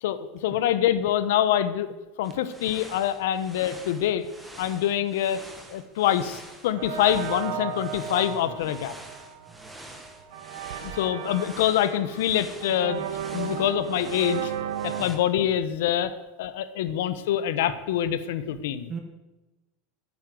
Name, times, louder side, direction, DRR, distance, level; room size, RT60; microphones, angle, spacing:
voice 1, 0.0-1.9 2.2-4.3 4.6-5.4 5.7-8.9 10.8-13.0 13.3-14.5 14.8-16.1 16.4-18.9, left 11 dB, 70° left, 13 dB, 1.1 m, -25 dB
sound 1, 2.2-15.2, right 1 dB, 5° right, 1.6 m, -47 dB
sound 2, 6.7-15.1, right 9 dB, 75° right, 1.6 m, -35 dB
voice 2, 8.2-8.6 9.5-9.8 15.0-15.2 16.9-17.0 18.5-18.6 18.9-19.0, right 6 dB, 20° right, 4 dB, 1.3 m, -41 dB
14.0 x 9.2 x 7.7 m, 1.1 s
supercardioid pair, 175°, 0 cm